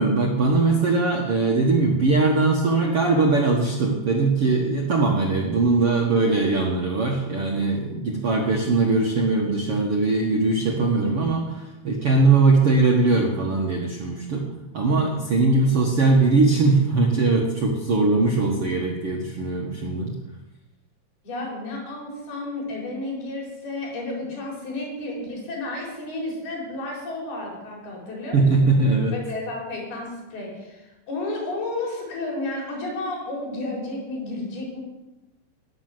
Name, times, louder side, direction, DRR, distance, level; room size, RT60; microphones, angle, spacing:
voice 1, 0.0-14.5 14.7-20.1 28.3-29.1, right 3 dB, 75° right, -1 dB, 1.3 m, -20 dB
voice 2, 21.2-28.7 29.1-34.8, left 2 dB, 60° left, -2 dB, 6.2 m, -32 dB
18.5 x 6.8 x 7.8 m, 1.0 s
omnidirectional pair, 5.1 m